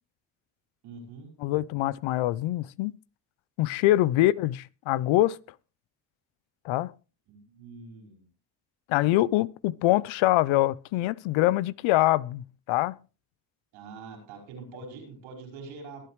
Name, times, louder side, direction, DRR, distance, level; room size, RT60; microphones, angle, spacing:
voice 1, 0.8-1.3 4.2-4.3 7.3-8.3 13.7-16.0, right 4 dB, 90° right, 5.2 m, -44 dB
voice 2, 1.4-2.9 3.6-5.4 6.6-6.9 8.9-13.0, left 16 dB, 85° left, 0.7 m, -24 dB
22.5 x 8.7 x 3.1 m
supercardioid pair, 55°, 46 cm